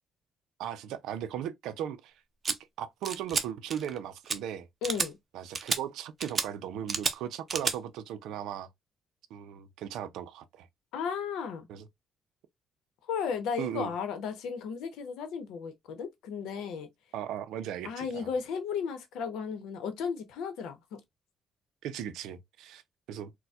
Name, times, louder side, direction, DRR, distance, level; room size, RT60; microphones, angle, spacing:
voice 1, 0.6-2.1 2.8-4.7 5.3-8.7 9.3-10.7 11.7-11.9 13.6-13.9 17.1-18.3 21.8-22.8 23.1-23.3, right 10 dB, 90° right, 0.4 m, -37 dB
sound 1, 2.4-2.6 3.0-3.4 3.7-4.0 4.3-4.4 4.8-5.1 5.5-5.8 6.2-6.5 6.9-7.1 7.5-7.8, right 5 dB, 40° right, 0.5 m, -30 dB
voice 2, 4.8-5.2 10.9-11.7 13.1-16.9 17.8-21.0, left 6 dB, 90° left, 0.8 m, -34 dB
4.1 x 2.1 x 2.3 m
cardioid pair, 90°, 0 cm